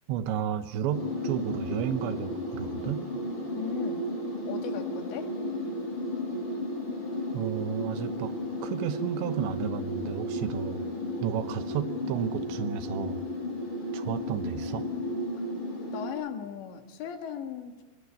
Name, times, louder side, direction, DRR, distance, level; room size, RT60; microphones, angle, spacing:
voice 1, 0.1-3.1 7.3-8.3 8.6-10.8 11.2-13.2 13.9-14.9, right 9 dB, 85° right, 10 dB, 3.4 m, -32 dB
sound 1, 0.9-16.1, left 1 dB, 45° left, 9.0 m, -33 dB
voice 2, 3.5-4.1 4.5-5.4 15.9-17.8, left 8 dB, 75° left, 5 dB, 4.0 m, -37 dB
23.0 x 23.0 x 9.9 m, 1.2 s
omnidirectional pair, 5.2 m